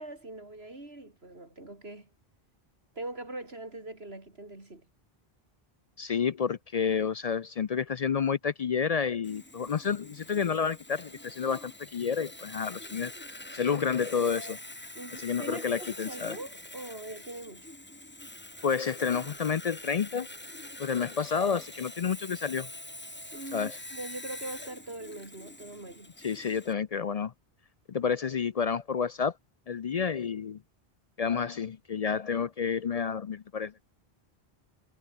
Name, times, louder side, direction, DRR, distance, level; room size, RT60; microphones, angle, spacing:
voice 1, 0.0-2.1 2.9-4.9 14.9-17.7 23.3-26.1, right 2 dB, 80° right, 4.9 m, -42 dB
voice 2, 6.0-13.1 13.5-14.6 15.2-16.4 18.6-20.3 20.8-22.7 23.5-23.8 26.2-27.3 27.9-29.3 29.7-30.6 31.2-33.7, left 6 dB, 50° left, 0.5 m, -30 dB
Sawing, 9.2-26.7, left 1 dB, 10° left, 1.1 m, -45 dB
omnidirectional pair, 1.0 m